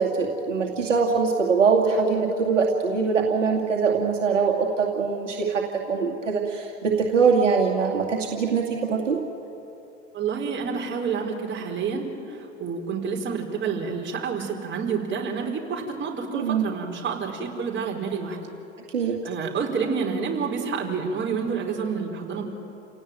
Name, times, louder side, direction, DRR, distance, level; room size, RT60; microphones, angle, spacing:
voice 1, 0.0-9.2 16.3-16.7 18.9-19.2, right 5 dB, 75° right, 0 dB, 2.4 m, -23 dB
voice 2, 10.1-18.4 19.2-22.5, right 5 dB, 30° right, 0 dB, 4.7 m, -29 dB
29.0 x 17.5 x 9.1 m, 2.9 s
figure-of-eight pair, 80°, 37 cm